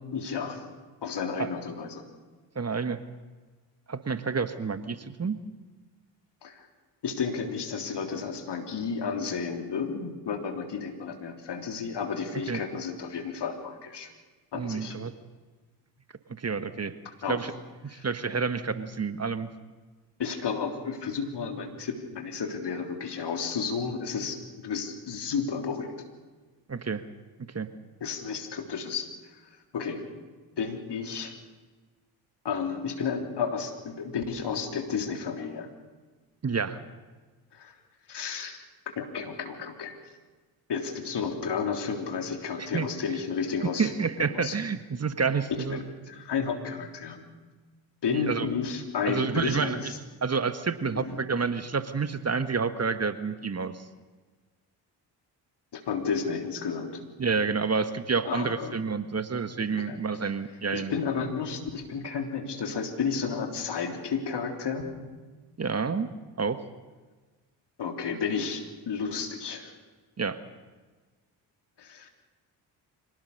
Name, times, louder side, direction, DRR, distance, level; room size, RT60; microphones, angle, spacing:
voice 1, 0.1-0.6 1.0-2.0 6.4-6.7 7.0-14.1 14.5-15.0 17.2-17.4 17.9-18.1 20.2-26.0 28.0-30.0 30.6-31.3 32.4-35.7 37.5-37.7 38.1-38.6 39.0-40.0 40.7-43.9 44.3-44.6 45.7-47.2 48.0-50.0 50.9-51.2 55.7-57.0 58.2-58.8 59.8-60.0 60.7-64.9 67.8-69.7 71.8-72.1, left 6 dB, 60° left, 5 dB, 3.6 m, -32 dB
voice 2, 2.5-3.0 3.9-5.4 12.5-12.6 14.5-15.1 16.3-16.9 17.3-17.5 17.8-19.5 26.7-27.0 27.5-27.7 36.4-36.8 42.6-42.9 43.8-45.8 48.1-48.5 49.0-49.9 50.2-53.9 57.2-61.0 65.6-66.1 66.4-66.6 70.2-70.4, right 5 dB, 30° right, 11 dB, 1.6 m, -29 dB
25.5 x 18.5 x 6.8 m, 1.3 s
hypercardioid pair, 45°, 47 cm